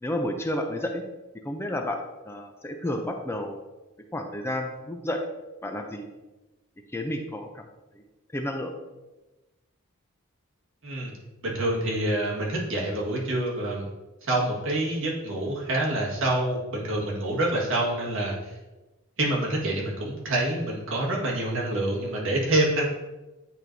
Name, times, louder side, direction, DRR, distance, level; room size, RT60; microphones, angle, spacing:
voice 1, 0.0-1.0 1.4-2.0 2.2-3.6 4.1-5.2 5.6-6.1 6.9-7.7 7.9-8.0 8.3-8.7, left 1 dB, 10° left, 4 dB, 0.4 m, -31 dB
voice 2, 11.4-13.8 14.2-18.6 19.2-22.9, right 1 dB, 65° right, -3 dB, 1.7 m, -27 dB
8.9 x 4.5 x 2.7 m, 1.1 s
head